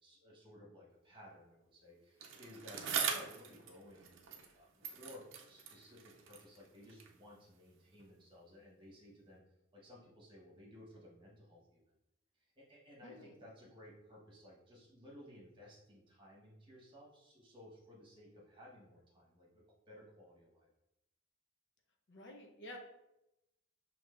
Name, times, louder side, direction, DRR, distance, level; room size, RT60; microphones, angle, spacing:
voice 1, 0.0-4.2 4.5-9.4 9.7-11.8 12.3-20.7, left 1 dB, 25° right, -4 dB, 1.2 m, -57 dB
Bicycle, 2.2-4.6 4.8-7.2 8.0-8.1, right 6 dB, 60° right, 0.6 m, -42 dB
voice 2, 13.0-13.3 22.1-22.8, left 1 dB, 55° left, 2 dB, 0.7 m, -51 dB
6.3 x 2.9 x 2.5 m, 0.88 s
head